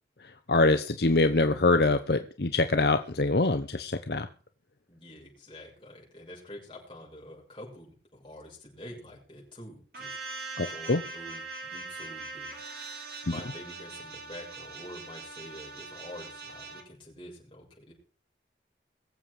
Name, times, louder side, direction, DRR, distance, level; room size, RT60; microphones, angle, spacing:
voice 1, 0.2-4.3 10.6-11.0, left 3 dB, 65° left, 8 dB, 0.9 m, -24 dB
voice 2, 4.9-10.2 10.7-12.6 13.2-17.9, left 1 dB, 25° left, -3 dB, 7.1 m, -47 dB
sound 1, 9.9-16.8, right 3 dB, 60° right, 3.3 m, -41 dB
22.5 x 7.7 x 4.9 m, 0.41 s
head